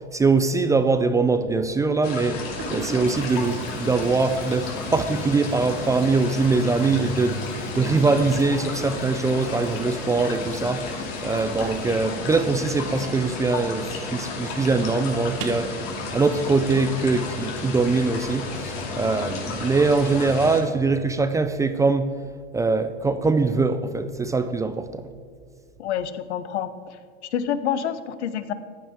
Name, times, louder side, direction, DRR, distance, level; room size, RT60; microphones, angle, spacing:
voice 1, 0.0-2.4 2.7-22.1 22.5-25.1, right 3 dB, 10° right, 10 dB, 0.4 m, -22 dB
Toilet flush, 1.3-1.5 2.2-2.3 2.5-13.8 14.1-14.2 14.5-14.6 15.3-15.7, right 5 dB, 45° right, 1.8 m, -43 dB
sound 1, 2.0-20.6, left 3 dB, 50° left, 2.6 m, -32 dB
voice 2, 25.8-28.5, left 9 dB, 75° left, 13 dB, 0.9 m, -28 dB
15.0 x 10.0 x 3.6 m, 2.2 s
hypercardioid pair, 105°, 35 cm